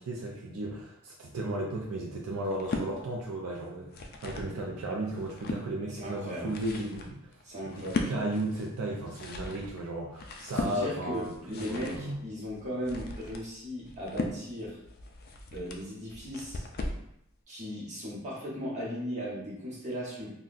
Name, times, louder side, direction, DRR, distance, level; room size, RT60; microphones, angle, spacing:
voice 1, 0.0-7.2 7.7-12.2, right 1 dB, 75° right, -1 dB, 0.4 m, -35 dB
sound 1, 2.4-2.9 3.7-4.5 5.0-5.6 6.2-17.1, left 2 dB, 45° left, 0.3 m, -38 dB
voice 2, 5.9-6.5 7.4-8.1 10.5-14.8 15.5-16.6 17.5-20.3, equal, 35° right, -6 dB, 1.0 m, -37 dB
3.8 x 2.2 x 2.5 m, 0.77 s
head